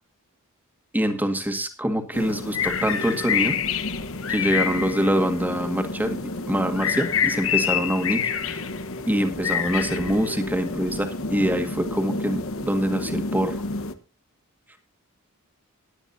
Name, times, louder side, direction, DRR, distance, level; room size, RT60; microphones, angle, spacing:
voice 1, 0.9-3.6 4.3-6.2 6.5-8.6 9.1-13.6, equal, 10° right, 6 dB, 1.8 m, -25 dB
sound 1, 2.1-13.9, left 6 dB, 65° left, 1.2 m, -28 dB
20.5 x 9.7 x 2.7 m, 0.29 s
head